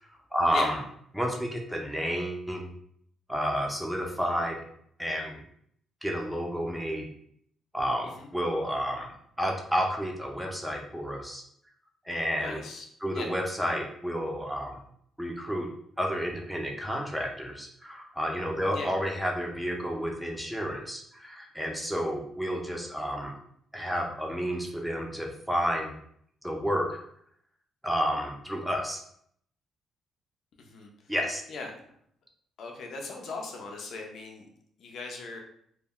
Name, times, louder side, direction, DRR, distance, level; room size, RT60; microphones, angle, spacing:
voice 1, 0.3-0.8 1.1-2.7 3.3-4.6 5.0-5.4 6.0-7.1 7.7-11.4 12.1-12.6 13.0-14.8 15.2-15.7 16.0-23.3 23.7-25.9 26.4-27.0 27.8-29.0 31.1-31.4, equal, ahead, 0 dB, 0.5 m, -30 dB
voice 2, 12.4-12.8 13.1-13.3 18.7-18.9 30.6-30.9 31.5-31.7 32.6-34.5 34.8-35.4, left 3 dB, 65° left, 2 dB, 0.5 m, -38 dB
2.1 x 2.1 x 3.6 m, 0.67 s
cardioid pair, 90°, 0 cm